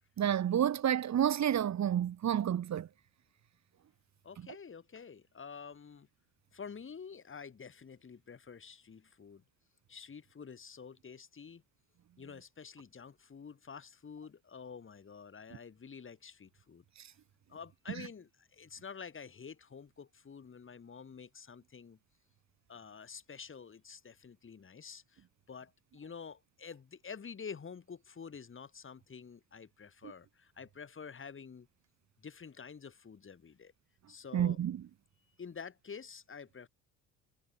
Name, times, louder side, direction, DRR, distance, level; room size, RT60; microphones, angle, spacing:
voice 1, 0.2-2.9 17.0-17.1 34.3-34.8, right 10 dB, 45° right, 1.9 m, -30 dB
voice 2, 4.2-6.1 6.5-9.4 9.9-11.6 12.2-16.8 17.5-22.0 22.7-31.7 32.2-33.7 34.1-34.6 35.4-36.7, left 6 dB, 35° left, 4.7 m, -49 dB
supercardioid pair, 80°, 38 cm